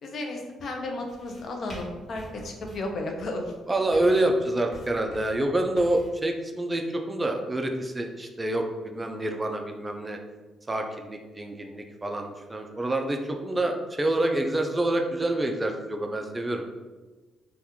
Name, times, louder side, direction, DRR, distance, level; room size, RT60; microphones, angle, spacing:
voice 1, 0.0-3.5, left 2 dB, 55° left, 2 dB, 0.5 m, -33 dB
sound 1, 1.1-6.1, equal, 35° left, 1.2 m, -47 dB
voice 2, 3.7-10.2 10.7-16.7, right 1 dB, 20° right, 3 dB, 0.3 m, -27 dB
2.8 x 2.3 x 3.5 m, 1.2 s
cardioid pair, 90°, 0 cm